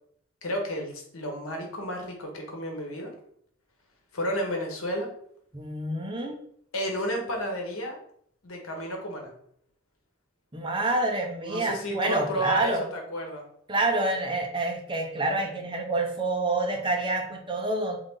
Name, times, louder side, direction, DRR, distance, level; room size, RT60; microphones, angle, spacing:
voice 1, 0.4-3.1 4.1-5.1 6.7-8.0 8.4-9.3 11.4-13.4, equal, 85° left, 2 dB, 1.2 m, -32 dB
voice 2, 5.5-6.4 10.5-12.8 13.7-18.0, right 2 dB, 25° right, 2 dB, 0.7 m, -27 dB
3.8 x 3.6 x 3.6 m, 0.65 s
head